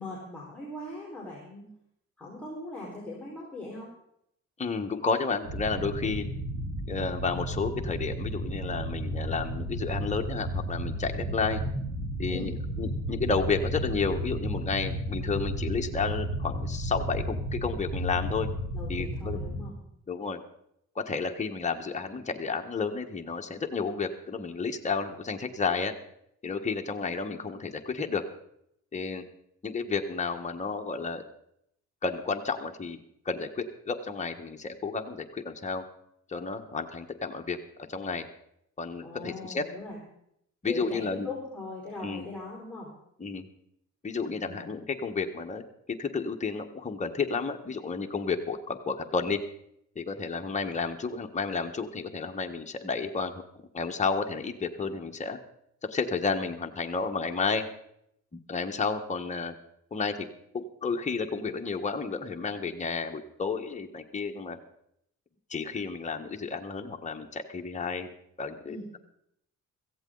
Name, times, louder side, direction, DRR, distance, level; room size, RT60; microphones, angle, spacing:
voice 1, 0.0-1.7 2.2-3.9 12.3-12.5 18.7-19.7 39.0-40.0 40.6-42.9 44.2-44.7 68.6-68.8, left 2 dB, 5° left, -5 dB, 4.8 m, -40 dB
voice 2, 4.6-6.3 6.9-11.6 12.2-18.5 18.9-19.4 20.1-20.4 20.9-25.9 26.4-28.2 28.9-29.3 29.6-31.2 32.0-33.0 33.2-35.8 36.3-38.3 38.8-39.6 40.6-41.3 42.0-42.3 43.2-43.5 44.0-49.4 49.9-53.4 53.7-55.4 55.8-57.7 58.3-59.6 59.9-60.3 60.5-64.6 65.5-68.1 68.4-69.0, left 4 dB, 25° left, 3 dB, 1.4 m, -31 dB
sound 1, 5.4-19.6, equal, 65° right, 5.4 m, -33 dB
16.5 x 15.0 x 4.0 m, 0.74 s
cardioid pair, 90°, 30 cm